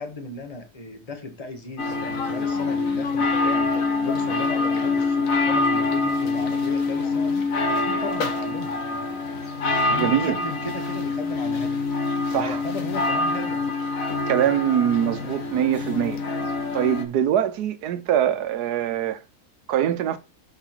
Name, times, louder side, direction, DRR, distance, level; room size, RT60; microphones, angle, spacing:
voice 1, 0.0-8.7 9.9-11.8 12.3-13.6, left 3 dB, 25° left, 1.4 m, -36 dB
sound 1, 1.8-17.0, left 3 dB, 60° left, 1.5 m, -25 dB
voice 2, 10.0-10.3 12.3-12.6 14.3-16.2 16.7-19.2 19.7-20.2, right 10 dB, 90° right, 1.3 m, -23 dB
6.0 x 5.9 x 4.4 m
omnidirectional pair, 1.6 m